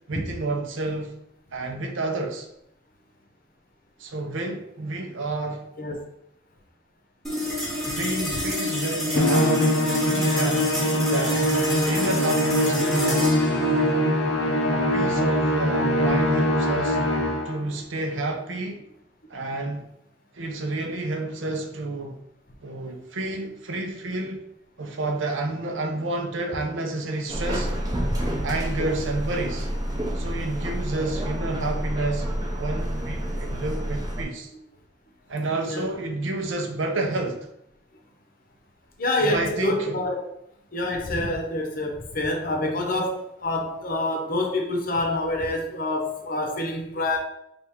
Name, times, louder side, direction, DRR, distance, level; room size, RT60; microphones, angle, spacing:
voice 1, 0.1-1.1 1.5-2.5 4.0-5.6 7.8-11.4 11.8-13.4 14.6-17.0 17.5-18.8 19.3-19.9 20.3-22.1 22.6-24.4 24.8-27.7 28.4-29.7 30.1-34.5 35.3-37.4 39.2-40.0, right 2 dB, 75° right, 0.7 m, -30 dB
sound 1, 7.2-17.9, left 1 dB, ahead, 1.0 m, -29 dB
Musical instrument, 9.2-17.6, equal, 90° left, 0.7 m, -23 dB
Subway metro underground, 27.3-34.2, equal, 20° right, 0.7 m, -29 dB
voice 2, 39.0-40.3 40.7-47.2, left 2 dB, 45° left, 0.8 m, -27 dB
3.4 x 2.5 x 4.4 m
head